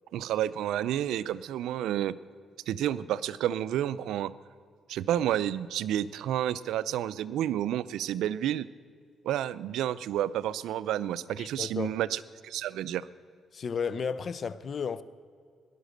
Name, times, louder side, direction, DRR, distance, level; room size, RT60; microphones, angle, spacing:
voice 1, 0.1-2.1 2.7-4.3 4.9-8.7 9.2-13.1, right 11 dB, 85° right, 0.5 m, -30 dB
voice 2, 11.4-12.0 13.5-15.0, left 6 dB, 50° left, 0.7 m, -33 dB
18.0 x 11.5 x 6.6 m
cardioid pair, 90°, 0 cm